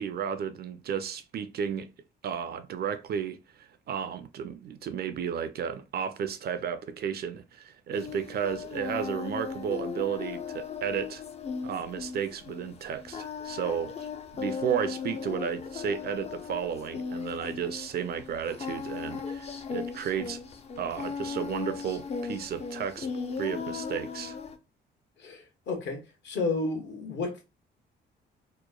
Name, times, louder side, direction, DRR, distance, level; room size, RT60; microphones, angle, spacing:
voice 1, 0.0-1.9 2.2-11.2 11.6-14.1 14.3-20.4 20.8-23.1 23.4-24.4, right 8 dB, 55° right, 0.4 m, -33 dB
Singing, 7.9-24.6, left 5 dB, 30° left, 0.4 m, -37 dB
voice 2, 25.2-27.4, left 3 dB, 65° left, 0.9 m, -32 dB
2.9 x 2.1 x 2.2 m
cardioid pair, 90°, 20 cm